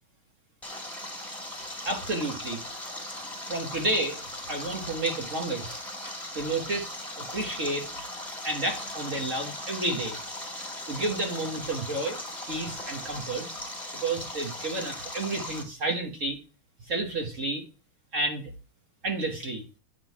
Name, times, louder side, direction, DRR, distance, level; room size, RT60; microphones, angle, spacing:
Stream, 0.6-15.6, left 1 dB, ahead, 1.9 m, -38 dB
voice 1, 1.8-2.6 3.4-4.2 4.5-7.9 8.4-10.2 10.9-12.2 12.5-13.5 14.0-16.4 16.9-17.6 18.1-18.5 19.0-19.6, right 2 dB, 45° right, 3 dB, 1.3 m, -31 dB
9.1 x 3.7 x 4.6 m, 0.33 s
omnidirectional pair, 2.4 m